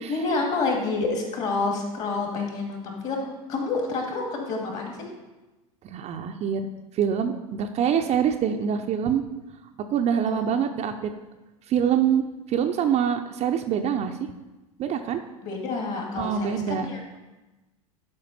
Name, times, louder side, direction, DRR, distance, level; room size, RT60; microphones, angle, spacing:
voice 1, 0.1-5.0 10.3-10.6 15.4-17.0, left 3 dB, 40° left, 1 dB, 2.5 m, -28 dB
voice 2, 5.8-6.6 6.9-9.2 9.9-11.1 11.7-12.2 12.5-14.1 14.8-15.2 16.2-16.9, right 8 dB, 35° right, 5 dB, 0.6 m, -25 dB
11.0 x 5.1 x 4.2 m, 1.1 s
figure-of-eight pair, 80°, 19 cm